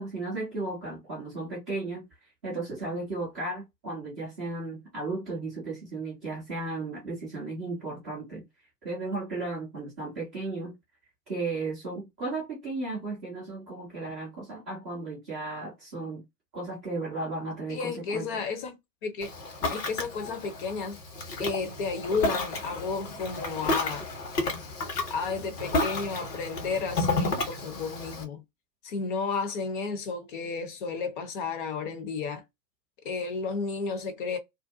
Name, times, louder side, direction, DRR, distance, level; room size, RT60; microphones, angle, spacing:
voice 1, 0.0-2.1 2.4-8.4 8.8-10.7 11.3-16.2 16.5-18.3, right 2 dB, 10° right, 0.3 m, -35 dB
voice 2, 17.7-19.3 19.6-21.0 21.4-24.1 25.1-28.4 28.8-32.4 33.0-34.4, left 4 dB, 30° left, 0.6 m, -32 dB
Ocean, 19.2-28.2, left 2 dB, 70° left, 1.3 m, -32 dB
2.5 x 2.2 x 2.5 m
figure-of-eight pair, 105°, 50 cm